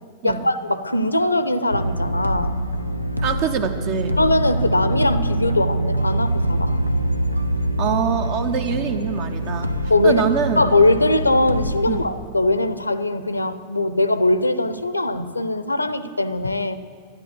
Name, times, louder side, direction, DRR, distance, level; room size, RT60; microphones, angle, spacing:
voice 1, 0.2-2.7 4.2-6.7 9.9-10.2 10.6-16.8, left 2 dB, 85° left, 13 dB, 0.6 m, -21 dB
sound 1, 1.7-12.1, right 1 dB, 90° right, 0.6 m, -24 dB
voice 2, 3.2-4.2 7.8-9.7 10.0-10.7 11.9-12.0, right 7 dB, 45° right, 9 dB, 1.0 m, -24 dB
12.5 x 11.0 x 8.4 m, 2.1 s
figure-of-eight pair, 90°, 0 cm